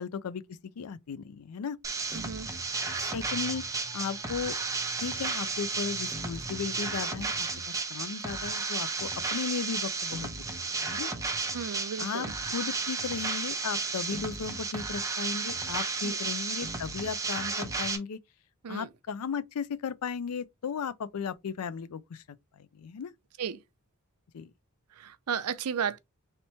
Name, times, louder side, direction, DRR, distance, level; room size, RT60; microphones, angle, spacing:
voice 1, 0.0-1.8 2.1-2.2 2.9-3.6 3.9-4.6 5.0-7.5 7.9-11.1 12.0-18.2 18.7-22.2 22.5-23.1 24.3-24.5, left 6 dB, 75° left, 0.4 m, -36 dB
sound 1, 1.8-18.0, right 4 dB, 15° right, 0.7 m, -33 dB
sound 2, 1.9-7.5, left 1 dB, 10° left, 2.2 m, -51 dB
voice 2, 2.1-2.5 11.5-12.3 16.0-16.2 18.6-18.9 23.4-23.6 25.0-26.0, right 7 dB, 85° right, 0.5 m, -34 dB
3.3 x 2.9 x 4.1 m
head